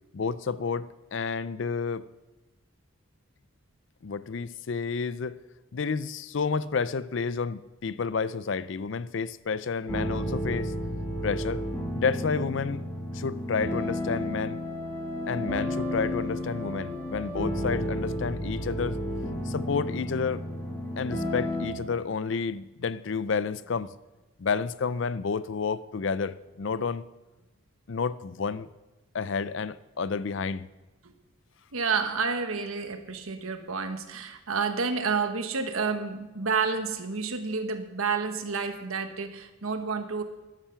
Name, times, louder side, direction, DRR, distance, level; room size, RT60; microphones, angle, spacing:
voice 1, 0.1-2.1 4.0-5.4 5.7-10.7 11.2-11.6 11.9-12.8 13.1-14.6 15.3-19.0 19.5-20.4 21.0-23.9 24.4-27.0 27.9-28.7 29.1-30.7, left 5 dB, 60° left, 0.5 m, -30 dB
sound 1, 9.9-21.7, equal, 10° left, 2.5 m, -32 dB
voice 2, 31.7-40.2, right 5 dB, 85° right, 1.3 m, -30 dB
13.0 x 11.5 x 5.8 m
head